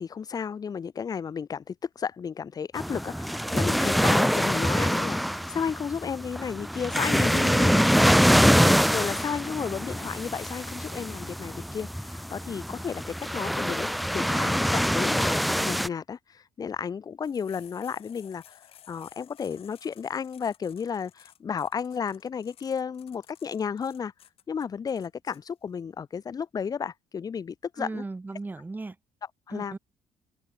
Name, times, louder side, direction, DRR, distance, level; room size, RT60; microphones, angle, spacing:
voice 1, 0.0-8.1 8.9-24.1 24.5-28.0 29.5-29.8, left 6 dB, 35° left, 1.4 m, -33 dB
sound 1, 2.8-15.9, equal, ahead, 0.5 m, -24 dB
voice 2, 7.3-8.3 27.8-29.0 29.5-29.8, right 3 dB, 15° right, 5.1 m, -35 dB
sound 2, 17.2-25.4, left 11 dB, 60° left, 4.4 m, -55 dB
cardioid pair, 115°, 11 cm